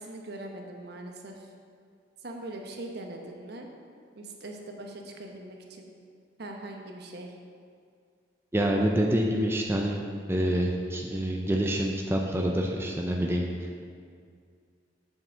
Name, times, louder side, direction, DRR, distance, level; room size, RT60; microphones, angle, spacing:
voice 1, 0.0-1.5 2.2-3.7 4.1-5.9 6.4-7.3, right 1 dB, 60° right, 2 dB, 1.0 m, -41 dB
voice 2, 8.5-10.0 10.3-13.8, right 1 dB, 15° right, 0 dB, 0.5 m, -27 dB
7.4 x 5.6 x 6.3 m, 2.2 s
head